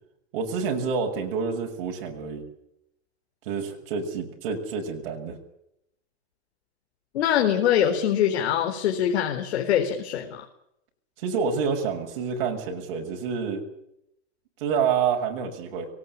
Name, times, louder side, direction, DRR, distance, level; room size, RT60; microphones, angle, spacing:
voice 1, 0.3-2.4 3.4-5.4 11.2-13.6 14.6-15.9, right 6 dB, 55° right, 1 dB, 6.6 m, -28 dB
voice 2, 7.1-10.4, left 9 dB, 70° left, 4 dB, 4.1 m, -23 dB
23.0 x 19.0 x 8.6 m, 0.78 s
supercardioid pair, 170°, 34 cm